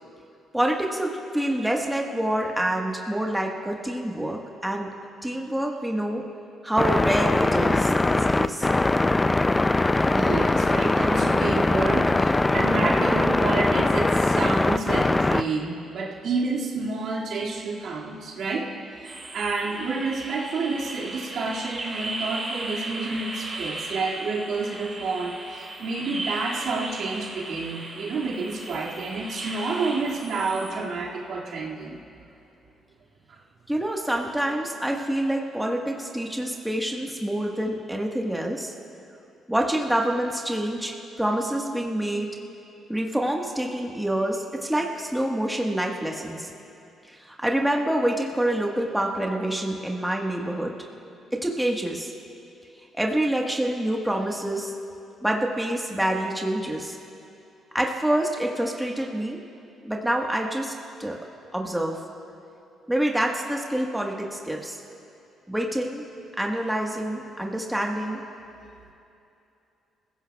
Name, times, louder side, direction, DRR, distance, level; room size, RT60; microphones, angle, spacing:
voice 1, 0.5-4.9 5.2-6.2 6.6-8.7 33.7-38.7 39.5-42.3 42.9-46.5 47.1-50.7 51.3-52.1 52.9-54.7 55.2-57.0 57.7-59.4 59.8-60.7 61.0-61.2 61.5-62.0 62.9-64.8 65.5-66.0 66.4-68.2, right 1 dB, 5° right, 0 dB, 1.5 m, -27 dB
sound 1, 6.8-15.4, left 2 dB, 15° left, 0.4 m, -21 dB
voice 2, 10.0-32.0 33.3-33.4, right 3 dB, 70° right, -4 dB, 2.2 m, -29 dB
sound 2, 19.0-30.7, right 2 dB, 40° right, 3.9 m, -36 dB
26.5 x 15.5 x 2.4 m, 2.7 s
cardioid pair, 90°, 0 cm